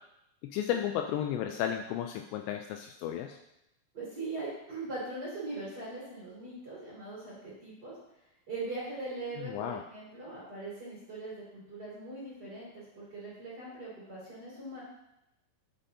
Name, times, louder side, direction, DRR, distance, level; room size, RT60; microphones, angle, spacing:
voice 1, 0.4-3.4 9.4-9.8, left 10 dB, 85° left, 5 dB, 2.6 m, -33 dB
voice 2, 3.9-7.9 8.5-14.8, right 2 dB, 25° right, -8 dB, 2.5 m, -41 dB
8.9 x 8.3 x 2.8 m, 0.84 s
omnidirectional pair, 5.3 m